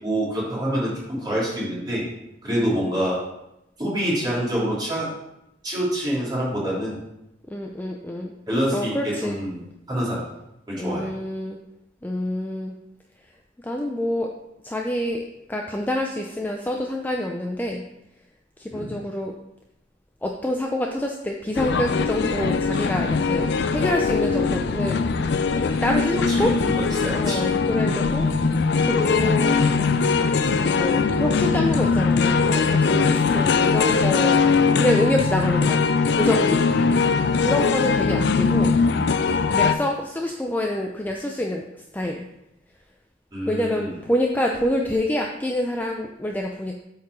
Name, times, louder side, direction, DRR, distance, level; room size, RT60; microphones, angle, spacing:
voice 1, 0.0-2.0 2.4-3.2 3.8-5.1 5.6-7.0 8.5-9.6 9.9-10.2 10.7-11.1 18.7-18.9 26.3-27.5 36.7-37.1 43.3-43.9, equal, 25° right, -7 dB, 3.1 m, -26 dB
voice 2, 7.5-8.3 8.7-9.4 10.8-11.6 12.0-12.7 13.6-14.3 14.6-17.8 18.6-19.3 20.2-25.0 25.8-26.5 27.1-28.3 28.8-29.6 30.8-34.4 34.8-35.9 36.1-36.6 37.4-38.7 39.5-41.6 41.9-42.2 43.5-46.8, left 1 dB, 10° left, 1 dB, 0.5 m, -26 dB
sound 1, 21.6-39.8, left 4 dB, 60° left, 0.4 m, -21 dB
8.2 x 4.7 x 4.7 m, 0.84 s
head